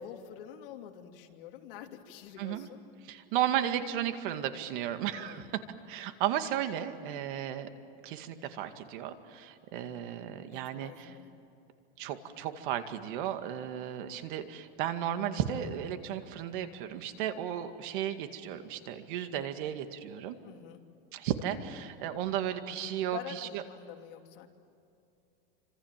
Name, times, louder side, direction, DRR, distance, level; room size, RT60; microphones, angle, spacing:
voice 1, 0.0-2.8 5.2-5.5 10.7-11.3 20.4-20.8 22.8-24.5, left 9 dB, 65° left, 3 dB, 2.9 m, -46 dB
voice 2, 3.0-5.5 5.9-7.7 8.0-11.1 12.0-20.4 21.1-23.6, right 10 dB, 55° right, 8 dB, 2.2 m, -34 dB
29.0 x 26.5 x 7.6 m, 2.7 s
supercardioid pair, 160°, 30 cm